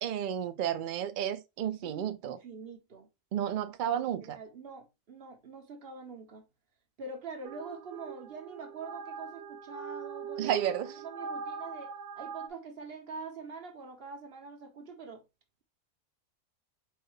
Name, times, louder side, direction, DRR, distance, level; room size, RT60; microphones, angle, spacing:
voice 1, 0.0-2.4 3.3-4.4 10.4-10.9, right 10 dB, 80° right, 0.4 m, -32 dB
voice 2, 1.8-3.1 3.9-6.4 7.0-10.6 11.0-15.2, right 4 dB, 50° right, 1.2 m, -45 dB
sound 1, 7.4-12.5, right 6 dB, 65° right, 0.9 m, -42 dB
4.7 x 2.4 x 4.7 m
omnidirectional pair, 1.4 m